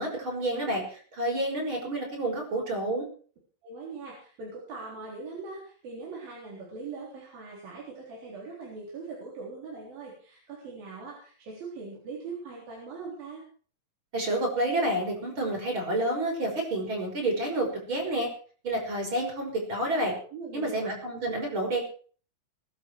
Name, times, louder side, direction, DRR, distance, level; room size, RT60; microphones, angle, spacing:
voice 1, 0.0-3.1 14.1-18.3 18.6-20.1 20.5-21.8, right 1 dB, 35° right, 1 dB, 6.3 m, -29 dB
voice 2, 3.6-13.4 20.3-20.9, right 4 dB, 80° right, -3 dB, 5.8 m, -41 dB
22.5 x 11.0 x 4.7 m, 0.43 s
omnidirectional pair, 4.1 m